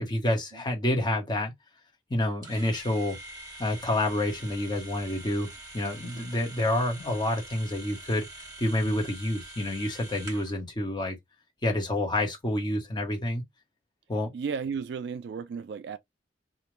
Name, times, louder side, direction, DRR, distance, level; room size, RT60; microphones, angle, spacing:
voice 1, 0.0-1.5 2.1-3.2 3.6-11.2 11.6-13.4 14.1-14.3, left 1 dB, 25° left, 0.9 m, -28 dB
sound 1, 2.4-10.6, right 2 dB, 20° right, 1.1 m, -45 dB
voice 2, 6.0-6.3 14.3-16.0, right 6 dB, 60° right, 0.3 m, -34 dB
2.4 x 2.1 x 2.9 m
head